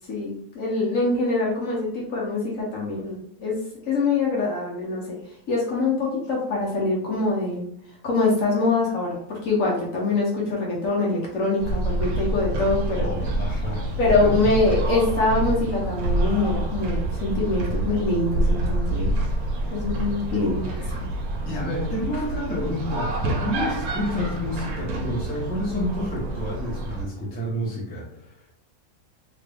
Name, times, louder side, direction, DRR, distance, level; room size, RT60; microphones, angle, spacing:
voice 1, 0.1-5.2 5.5-7.7 8.0-13.1 14.0-19.1 19.7-21.1, left 3 dB, 65° left, -3 dB, 1.1 m, -24 dB
sound 1, 11.6-27.0, right 1 dB, 70° right, 1.0 m, -27 dB
voice 2, 13.0-13.9 14.2-14.3 21.4-28.5, left 1 dB, 10° left, -5 dB, 0.6 m, -29 dB
2.9 x 2.5 x 3.3 m, 0.68 s
omnidirectional pair, 1.6 m